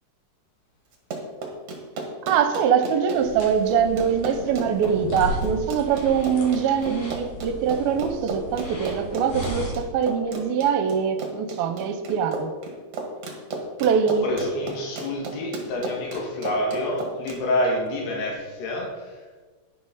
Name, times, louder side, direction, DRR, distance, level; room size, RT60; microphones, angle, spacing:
Run, 0.9-17.4, right 3 dB, 50° right, 2.3 m, -34 dB
voice 1, 2.2-12.5 13.8-14.3, right 7 dB, 75° right, 8 dB, 2.5 m, -23 dB
sound 1, 3.1-9.7, equal, 50° left, 3.1 m, -34 dB
voice 2, 14.2-19.1, left 1 dB, 85° left, -1 dB, 4.0 m, -27 dB
10.5 x 10.5 x 4.1 m, 1.3 s
omnidirectional pair, 4.6 m